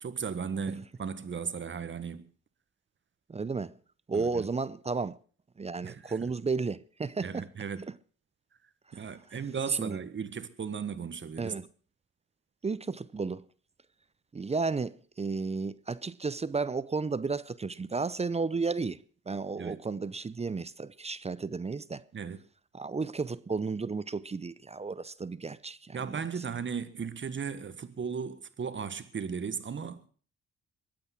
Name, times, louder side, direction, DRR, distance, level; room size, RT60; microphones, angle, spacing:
voice 1, 0.0-2.2 4.1-4.4 5.8-6.3 7.2-7.8 8.9-11.5 19.6-19.8 22.1-22.4 25.9-30.1, right 6 dB, 40° right, 1.6 m, -36 dB
voice 2, 3.3-3.7 4.1-5.2 5.6-7.5 9.3-9.4 9.7-10.0 11.4-11.7 12.6-13.4 14.3-19.0 19.3-22.0 22.7-26.2, right 4 dB, 20° right, 0.6 m, -33 dB
22.5 x 8.9 x 6.0 m
cardioid pair, 90°, 30 cm